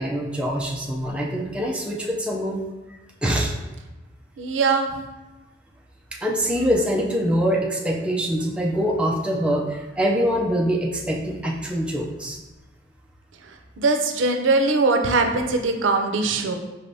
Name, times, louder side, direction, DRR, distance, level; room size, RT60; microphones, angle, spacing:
voice 1, 0.0-2.6 3.2-3.5 6.2-12.4, equal, 5° right, -2 dB, 0.4 m, -24 dB
voice 2, 4.4-4.9 13.4-16.6, right 3 dB, 85° right, 5 dB, 0.5 m, -21 dB
5.0 x 3.3 x 2.7 m, 1.1 s
head